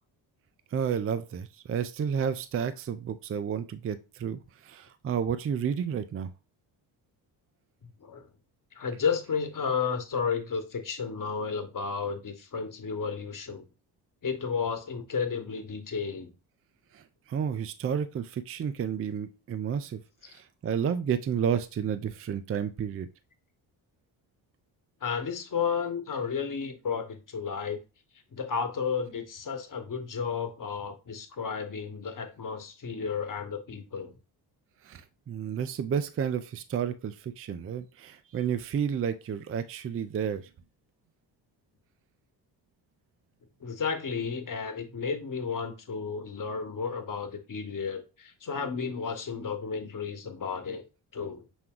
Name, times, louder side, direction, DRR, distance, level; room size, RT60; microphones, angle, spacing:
voice 1, 0.7-6.3 16.9-23.1 34.8-40.5, right 7 dB, 30° right, 12 dB, 0.5 m, -31 dB
voice 2, 8.7-13.7 14.2-16.3 20.2-20.3 25.0-27.8 28.3-34.2 43.6-50.8 51.1-51.4, left 6 dB, 40° left, 7 dB, 1.3 m, -32 dB
6.1 x 2.2 x 3.8 m, 0.31 s
supercardioid pair, 55°, 48 cm